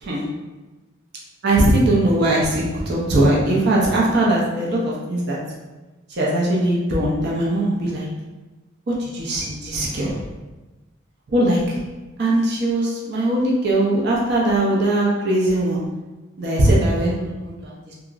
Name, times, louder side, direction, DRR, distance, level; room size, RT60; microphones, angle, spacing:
voice 1, 1.4-5.4 6.2-8.1 8.9-10.2 11.3-11.7 12.2-15.8 16.4-17.9, right 1 dB, 55° right, -4 dB, 0.5 m, -20 dB
2.9 x 2.4 x 2.4 m, 1.2 s
head